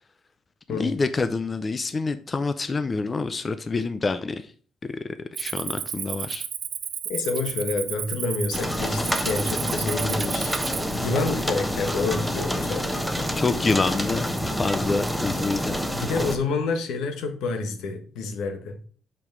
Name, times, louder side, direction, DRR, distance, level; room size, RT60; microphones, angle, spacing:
voice 1, 0.7-4.4 5.4-6.4 13.4-14.3 14.6-15.8, left 3 dB, 30° left, 0.5 m, -26 dB
Cricket, 5.4-11.0, right 9 dB, 70° right, 0.7 m, -33 dB
voice 2, 7.1-10.6 10.9-13.1 15.9-18.7, left 4 dB, 90° left, 1.3 m, -28 dB
sound 1, 8.5-16.4, equal, 5° left, 1.0 m, -27 dB
5.6 x 5.0 x 4.6 m
cardioid pair, 90°, 0 cm